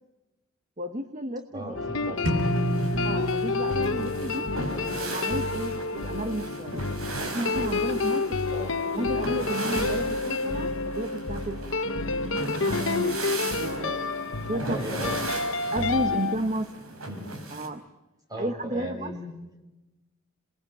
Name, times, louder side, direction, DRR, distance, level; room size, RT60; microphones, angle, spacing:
voice 1, 0.8-1.7 3.0-4.5 4.9-6.8 7.2-8.4 9.0-11.7 12.1-13.2 13.6-14.0 14.5-14.8 15.7-16.7 17.5-17.8 18.4-19.1, right 1 dB, 35° right, 8 dB, 1.2 m, -32 dB
voice 2, 1.5-2.2 8.5-8.8 13.7-14.0 14.5-15.2 17.1-17.3 18.3-19.4, equal, 15° right, 3 dB, 6.1 m, -36 dB
sound 1, 1.7-16.4, left 3 dB, 60° left, 1.1 m, -29 dB
sound 2, 2.2-17.7, right 2 dB, 80° right, 4.8 m, -38 dB
sound 3, 2.3-4.1, right 1 dB, 60° right, 6.0 m, -28 dB
27.5 x 20.5 x 9.1 m, 1.0 s
head